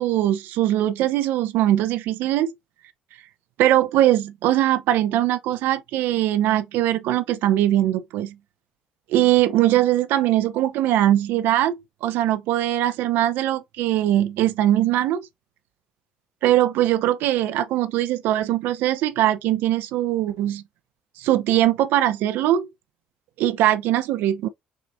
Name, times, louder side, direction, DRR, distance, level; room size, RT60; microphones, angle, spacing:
voice 1, 0.0-2.5 3.6-8.3 9.1-15.3 16.4-20.6 21.2-22.7 23.4-24.5, right 13 dB, 65° right, 0.4 m, -21 dB
6.1 x 2.5 x 2.5 m
hypercardioid pair, 55°, 4 cm